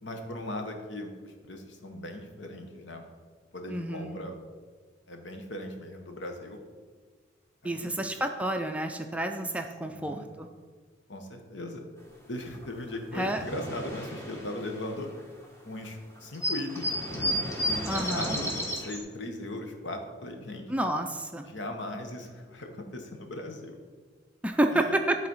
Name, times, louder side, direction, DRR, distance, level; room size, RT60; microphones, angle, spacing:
voice 1, 0.0-3.1 3.5-4.4 5.1-6.6 7.6-7.9 9.8-10.3 11.1-11.8 12.3-15.1 15.7-17.0 17.7-20.7 21.4-23.8 24.7-24.9, left 1 dB, 75° left, 4 dB, 1.1 m, -38 dB
voice 2, 3.7-4.2 7.6-10.5 13.1-13.4 17.9-18.3 20.7-21.5 24.4-25.2, right 1 dB, 5° right, 4 dB, 0.4 m, -29 dB
sound 1, 12.6-12.7 12.9-15.5 15.8-15.9 16.2-19.0, equal, 15° left, 1.1 m, -32 dB
10.5 x 4.0 x 5.5 m, 1.5 s
head